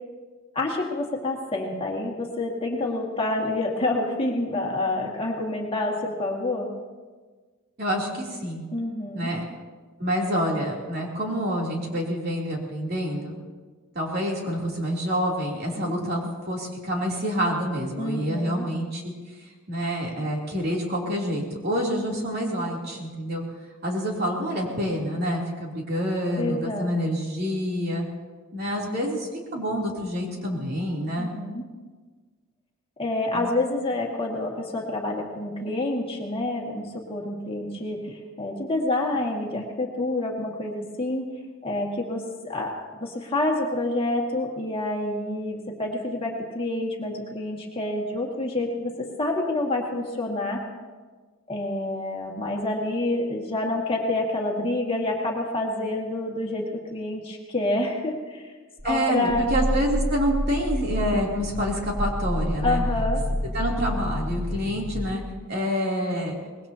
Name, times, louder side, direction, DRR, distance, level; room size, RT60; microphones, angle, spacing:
voice 1, 0.6-6.7 8.7-9.3 15.8-16.1 18.0-18.6 26.4-26.9 31.2-31.6 33.0-41.3 41.6-42.7 43.0-50.6 51.5-58.4 58.8-59.4 62.6-63.2, left 2 dB, 25° left, -1 dB, 2.0 m, -28 dB
voice 2, 7.8-8.6 9.1-9.4 10.0-13.4 13.9-19.1 19.7-23.4 23.8-28.0 28.5-31.3 33.3-33.5 58.8-62.8 63.5-65.2 65.5-66.3, equal, 45° right, -2 dB, 3.2 m, -27 dB
Growling, 58.8-65.1, equal, 10° left, 1.3 m, -28 dB
24.5 x 20.5 x 2.9 m, 1.4 s
head